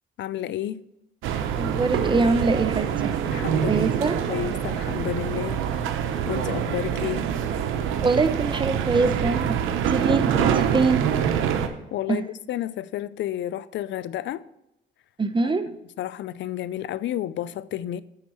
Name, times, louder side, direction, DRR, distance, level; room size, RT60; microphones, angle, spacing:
voice 1, 0.2-0.8 3.3-7.3 11.9-14.4 15.4-15.5 16.0-18.0, left 12 dB, 70° left, 0.4 m, -31 dB
sound 1, 1.2-11.7, right 8 dB, 90° right, 0.9 m, -25 dB
voice 2, 1.6-2.9 3.7-4.1 8.0-11.1 12.1-12.2 15.2-15.6, right 3 dB, 25° right, 0.8 m, -23 dB
10.5 x 4.4 x 6.3 m
cardioid pair, 90°, 20 cm